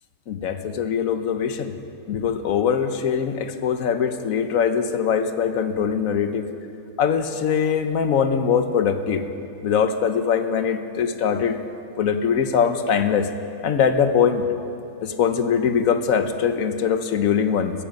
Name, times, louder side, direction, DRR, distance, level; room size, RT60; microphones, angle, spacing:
voice 1, 0.3-1.7 2.1-6.5 7.0-9.2 9.6-11.6 12.0-13.3 13.6-14.4 15.0-17.7, left 7 dB, 60° left, 9 dB, 1.1 m, -22 dB
18.0 x 14.5 x 5.3 m, 2.6 s
omnidirectional pair, 1.9 m